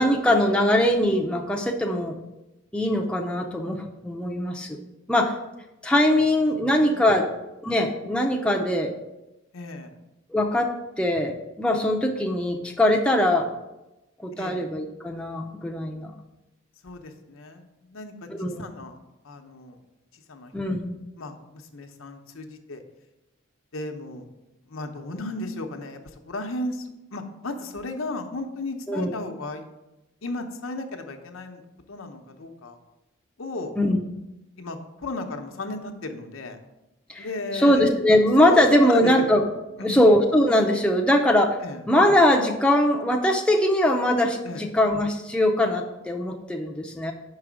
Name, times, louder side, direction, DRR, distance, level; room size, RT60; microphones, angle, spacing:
voice 1, 0.0-2.2 2.7-4.8 5.1-5.3 5.8-7.3 7.6-8.9 10.3-10.7 11.0-13.5 14.2-16.1 18.3-18.6 20.5-20.9 28.9-29.1 33.8-34.0 37.1-37.3 37.5-39.4 39.8-41.6 41.9-47.1, left 1 dB, 5° left, 1 dB, 0.5 m, -21 dB
voice 2, 6.6-7.1 9.5-9.9 14.4-14.7 16.8-18.3 18.6-19.0 19.2-19.8 20.1-20.5 21.2-22.8 23.7-24.3 24.7-29.7 30.2-31.6 31.9-32.8 33.4-33.7 34.6-36.6 37.2-37.9 38.4-39.3 39.8-40.1 41.6-41.8 44.4-44.7, left 2 dB, 80° left, 5 dB, 0.8 m, -35 dB
5.9 x 4.8 x 6.1 m, 0.98 s
head